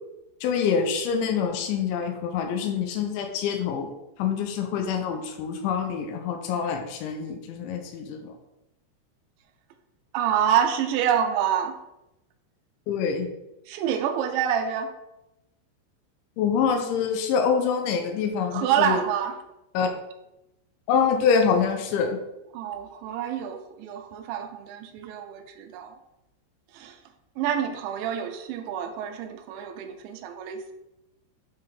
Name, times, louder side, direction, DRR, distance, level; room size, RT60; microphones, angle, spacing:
voice 1, 0.4-3.9 4.2-8.3 12.9-13.3 16.4-19.0 19.7-19.9 20.9-22.2, left 6 dB, 85° left, 3 dB, 3.2 m, -25 dB
voice 2, 10.1-11.8 13.7-14.9 18.5-19.4 22.5-26.0 26.7-27.0 27.4-30.7, right 9 dB, 85° right, 6 dB, 2.9 m, -27 dB
8.7 x 4.3 x 3.8 m, 0.92 s
omnidirectional pair, 5.2 m